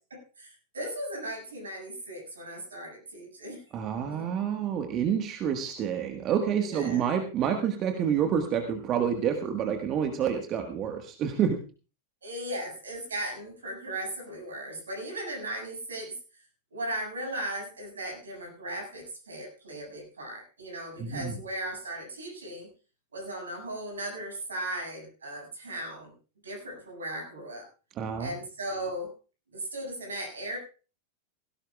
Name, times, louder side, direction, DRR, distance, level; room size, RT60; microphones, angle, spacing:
voice 1, 0.1-3.6 4.1-4.3 6.6-7.0 12.2-16.2 16.7-22.7 23.1-26.1 26.4-27.7 28.2-29.1 29.5-30.6, right 1 dB, 70° right, 1 dB, 7.0 m, -37 dB
voice 2, 3.7-11.6 21.0-21.3 28.0-28.3, right 8 dB, 35° right, 5 dB, 1.6 m, -28 dB
17.5 x 17.0 x 2.4 m, 0.35 s
figure-of-eight pair, 90°, 0 cm